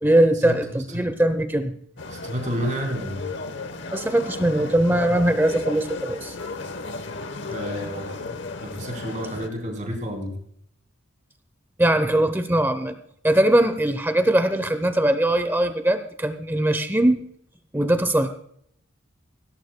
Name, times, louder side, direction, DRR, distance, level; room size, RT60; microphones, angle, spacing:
voice 1, 0.0-1.7 3.9-6.4 11.8-12.9 13.2-17.2 17.7-18.3, right 1 dB, 10° right, 10 dB, 0.7 m, -21 dB
sound 1, 2.0-9.5, left 3 dB, 55° left, 1.0 m, -34 dB
voice 2, 2.1-3.3 7.5-8.3 8.6-10.4, equal, 35° right, 2 dB, 4.0 m, -30 dB
17.5 x 17.0 x 2.2 m, 0.68 s
head